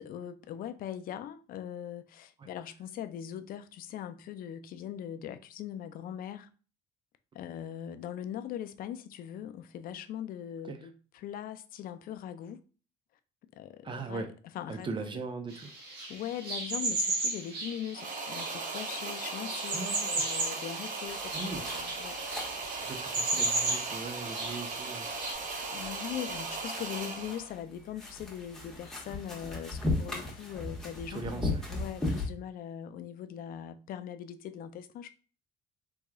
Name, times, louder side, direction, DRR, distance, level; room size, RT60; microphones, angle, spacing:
voice 1, 0.0-6.5 7.3-12.6 13.5-14.2 14.5-15.1 16.1-22.2 25.2-25.4 25.7-35.1, left 10 dB, 60° left, 0.4 m, -41 dB
voice 2, 13.8-14.3 14.7-15.7 19.7-20.2 21.3-21.7 22.7-25.3 31.1-31.7, right 3 dB, 30° right, 0.6 m, -39 dB
sound 1, 15.5-25.3, right 2 dB, 75° right, 1.2 m, -35 dB
sound 2, 17.9-27.5, right 4 dB, 50° right, 0.9 m, -38 dB
sound 3, 21.1-32.3, left 2 dB, 5° left, 1.2 m, -38 dB
3.5 x 3.0 x 2.3 m
cardioid pair, 110°, 17 cm